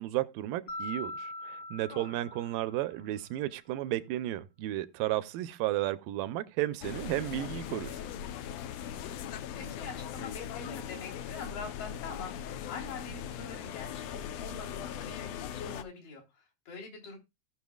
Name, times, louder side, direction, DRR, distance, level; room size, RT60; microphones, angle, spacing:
voice 1, 0.0-8.1, right 15 dB, 80° right, 2.3 m, -33 dB
Mallet percussion, 0.7-3.1, left 1 dB, 50° left, 1.9 m, -42 dB
voice 2, 1.9-2.3 8.8-9.1 9.5-17.2, left 4 dB, 70° left, 5.1 m, -45 dB
sound 1, 6.8-15.8, left 9 dB, 85° left, 1.4 m, -40 dB
17.5 x 6.1 x 2.3 m
omnidirectional pair, 4.0 m